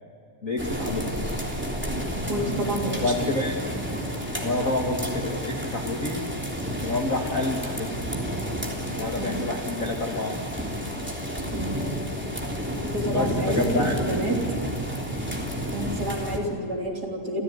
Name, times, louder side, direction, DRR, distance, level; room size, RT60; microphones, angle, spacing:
voice 1, 0.4-1.1 2.9-3.5 4.4-6.3 6.8-7.9 8.9-10.4 13.1-14.4, left 2 dB, 35° left, 1 dB, 1.7 m, -28 dB
sound 1, 0.6-16.4, equal, 5° right, 3.0 m, -30 dB
voice 2, 2.3-3.3 9.2-9.4 11.5-11.8 12.8-14.4 15.7-17.4, right 1 dB, 30° right, 0 dB, 3.8 m, -29 dB
28.5 x 15.5 x 9.6 m, 2.6 s
omnidirectional pair, 3.4 m